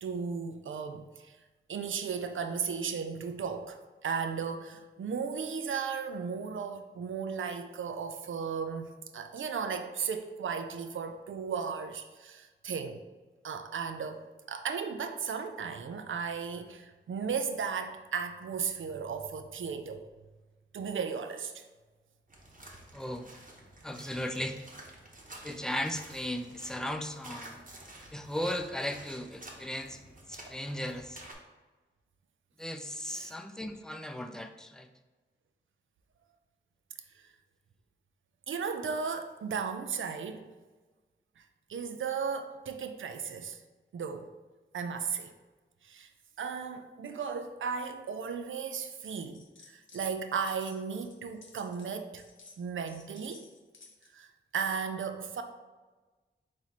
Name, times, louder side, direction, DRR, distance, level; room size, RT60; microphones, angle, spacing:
voice 1, 0.0-1.4 1.7-13.0 13.4-14.2 14.5-20.0 20.7-21.6 24.0-24.5 33.0-33.3 38.5-40.5 41.7-43.6 43.9-44.3 44.7-45.3 45.8-46.1 46.4-52.2 52.6-53.4 54.1-54.3 54.5-55.4, right 6 dB, 85° right, 0.4 m, -35 dB
sound 1, 22.3-31.3, right 1 dB, 45° right, 0.9 m, -50 dB
voice 2, 22.9-23.3 23.8-24.6 25.4-27.6 28.1-31.2 32.6-34.9, left 1 dB, 5° left, 0.4 m, -36 dB
sound 2, 49.1-50.1 50.3-54.2, left 4 dB, 80° left, 0.7 m, -56 dB
4.2 x 3.1 x 4.0 m
cardioid pair, 55°, 20 cm